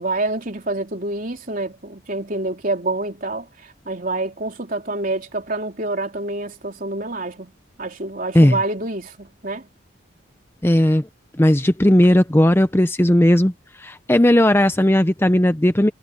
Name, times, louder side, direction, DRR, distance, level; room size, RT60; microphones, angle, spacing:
voice 1, 0.0-3.4 3.9-7.5 7.8-9.6, right 2 dB, 45° right, 3.7 m, -27 dB
voice 2, 10.6-11.1 11.4-13.5 13.8-15.9, left 1 dB, 10° left, 0.6 m, -16 dB
head